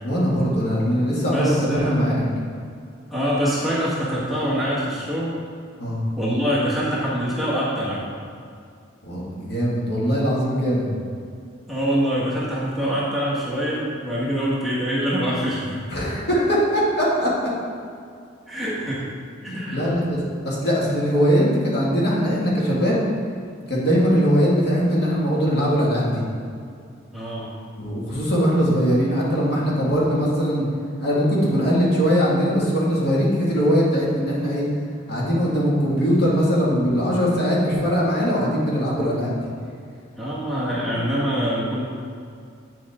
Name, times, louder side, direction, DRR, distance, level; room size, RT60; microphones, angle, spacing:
voice 1, 0.0-1.5 1.8-2.3 5.8-6.0 9.0-10.9 15.9-17.5 19.5-20.2 20.4-23.0 23.7-26.2 27.8-30.6 31.0-34.7 35.1-39.3, equal, 55° left, -6 dB, 2.1 m, -21 dB
voice 2, 1.3-2.0 3.1-5.3 6.2-8.0 11.7-15.8 18.5-19.1 19.4-20.0 27.1-27.5 40.1-41.8, equal, ahead, -9 dB, 1.5 m, -24 dB
9.1 x 7.1 x 3.7 m, 2.3 s
head